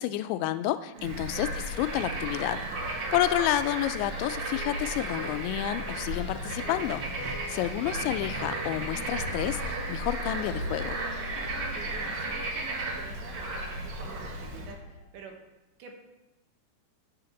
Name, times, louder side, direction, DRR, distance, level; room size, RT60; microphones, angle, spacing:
voice 1, 0.0-11.0, left 13 dB, 85° left, 12 dB, 2.8 m, -30 dB
Bird / Frog, 1.0-14.7, right 2 dB, 55° right, 2.1 m, -34 dB
sound 1, 1.3-15.1, right 1 dB, 60° left, 2.8 m, -47 dB
sound 2, 4.0-12.4, left 2 dB, 40° left, 2.0 m, -45 dB
voice 2, 11.7-15.4 15.8-16.0, right 5 dB, 75° right, 2 dB, 3.3 m, -48 dB
10.0 x 5.8 x 7.1 m, 1.0 s
omnidirectional pair, 5.3 m